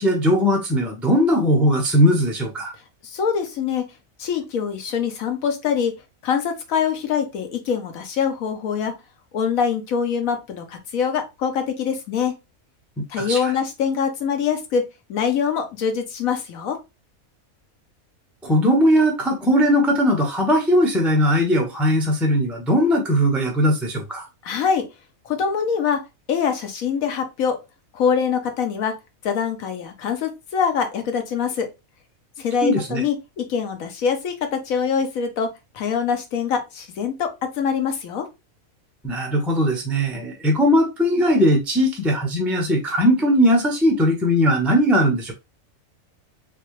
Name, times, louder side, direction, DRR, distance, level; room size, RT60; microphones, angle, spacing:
voice 1, 0.0-2.7 13.0-13.5 18.4-24.3 32.6-33.0 39.0-45.3, equal, ahead, 0.5 m, -19 dB
voice 2, 3.0-3.8 4.2-5.9 6.2-8.9 9.3-12.3 13.1-14.8 15.1-16.8 24.4-24.8 25.2-26.0 26.3-27.6 27.9-28.9 29.2-31.7 32.4-35.5 35.7-37.3 37.6-38.3, left 6 dB, 80° left, 1.2 m, -24 dB
3.4 x 2.9 x 3.0 m
omnidirectional pair, 1.5 m